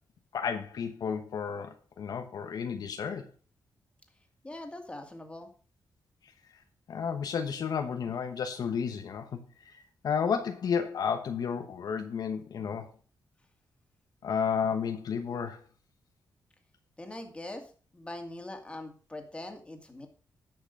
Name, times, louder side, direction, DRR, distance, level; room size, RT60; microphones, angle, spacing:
voice 1, 0.3-3.3 6.9-9.4 9.7-12.9 14.2-15.6, left 6 dB, 70° left, 1.1 m, -32 dB
voice 2, 4.4-5.5 17.0-20.1, left 1 dB, 15° left, 2.4 m, -42 dB
10.5 x 6.0 x 5.3 m
cardioid pair, 90°, 7 cm